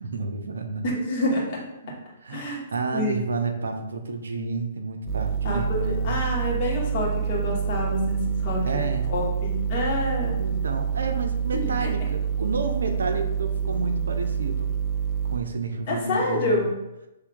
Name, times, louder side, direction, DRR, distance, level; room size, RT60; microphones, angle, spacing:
voice 1, 0.0-0.8 1.8-1.9 2.2-6.2 8.6-9.1 10.2-14.8 15.3-16.7, right 4 dB, 70° right, 4 dB, 0.5 m, -30 dB
voice 2, 0.8-1.6 2.3-2.6 2.9-3.2 5.4-8.8 9.1-10.4 11.5-11.9 15.9-16.7, left 2 dB, 45° left, -3 dB, 1.4 m, -27 dB
sound 1, 5.1-15.4, right 7 dB, 15° right, 0.5 m, -27 dB
5.7 x 3.2 x 2.4 m, 0.91 s
figure-of-eight pair, 120°, 0 cm